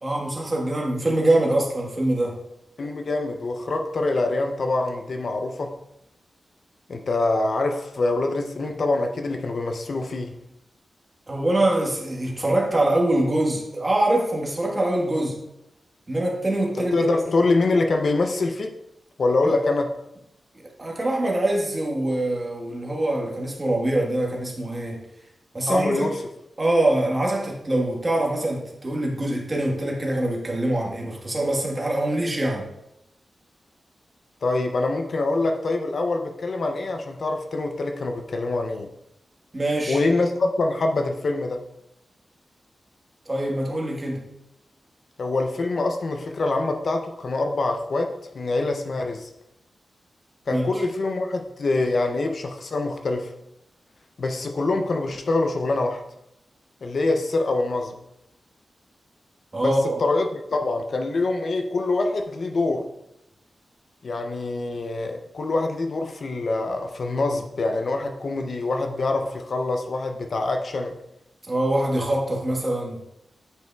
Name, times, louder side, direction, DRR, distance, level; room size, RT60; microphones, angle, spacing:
voice 1, 0.0-2.4 11.3-15.4 16.1-17.1 19.4-19.5 20.8-25.1 25.5-26.0 26.6-32.7 39.5-40.0 43.3-44.3 50.5-50.7 59.5-60.0 71.4-73.0, right 1 dB, 20° right, -2 dB, 1.2 m, -24 dB
voice 2, 2.8-5.8 6.9-10.4 16.8-18.8 19.2-19.9 25.7-26.1 34.4-38.9 39.9-41.6 45.2-49.3 50.5-53.3 54.2-56.0 56.8-57.9 59.6-62.9 64.0-71.0, left 2 dB, 50° left, 4 dB, 0.5 m, -25 dB
9.0 x 5.5 x 2.3 m, 0.85 s
wide cardioid pair, 175°, 0 cm